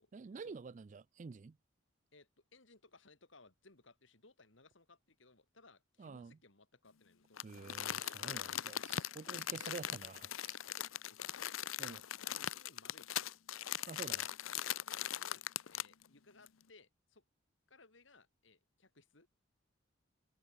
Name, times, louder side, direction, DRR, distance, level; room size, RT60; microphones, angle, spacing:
voice 1, 0.1-1.6 6.0-6.4 7.4-10.6 11.8-12.0 13.9-14.2, right 4 dB, 40° right, 0.3 m, -49 dB
voice 2, 2.1-7.8 9.5-9.7 10.6-12.0 12.4-13.2 14.0-14.2 14.8-17.2 17.7-19.3, left 3 dB, 70° left, 3.4 m, -63 dB
Crumpling crinkling, 7.4-16.0 16.5-16.6, left 11 dB, 90° left, 0.7 m, -40 dB
head